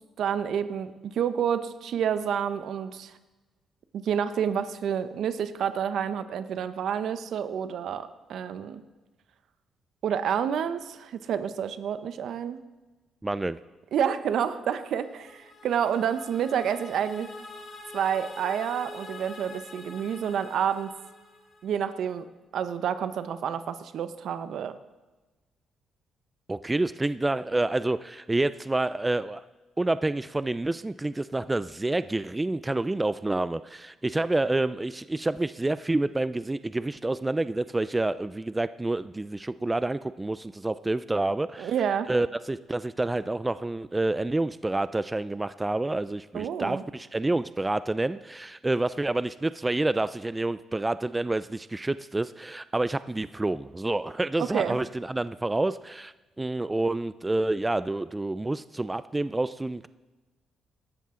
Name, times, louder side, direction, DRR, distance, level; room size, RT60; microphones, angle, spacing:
voice 1, 0.2-3.1 3.9-8.8 10.0-12.6 13.9-17.3 17.9-20.9 21.6-22.3 22.5-24.7 41.6-42.1 46.3-46.8 54.4-54.8, right 8 dB, 70° right, 11 dB, 0.8 m, -29 dB
voice 2, 13.2-13.6 26.5-29.4 29.8-41.7 42.1-59.9, right 2 dB, 15° right, 14 dB, 0.3 m, -28 dB
sound 1, 14.7-21.9, left 2 dB, 50° left, 3.2 m, -45 dB
17.0 x 13.0 x 3.8 m, 1.2 s
cardioid pair, 90°, 0 cm